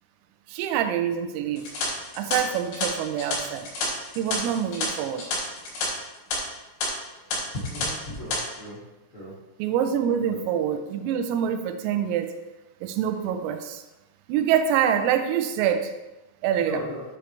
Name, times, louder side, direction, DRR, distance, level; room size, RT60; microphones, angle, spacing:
voice 1, 0.5-1.7 2.1-3.7 4.2-5.2 9.6-12.3 12.8-13.8 14.3-15.9 16.4-16.8, right 9 dB, 90° right, 8 dB, 3.5 m, -25 dB
sound 1, 1.6-5.9 6.1-6.4 6.8-6.9 7.3-7.9 8.1-8.4, left 2 dB, 70° left, 5.7 m, -30 dB
voice 2, 7.6-8.8 9.1-9.3 10.3-10.4 16.6-17.0, left 1 dB, 35° left, -8 dB, 2.4 m, -36 dB
10.5 x 8.3 x 3.3 m, 1.0 s
omnidirectional pair, 5.9 m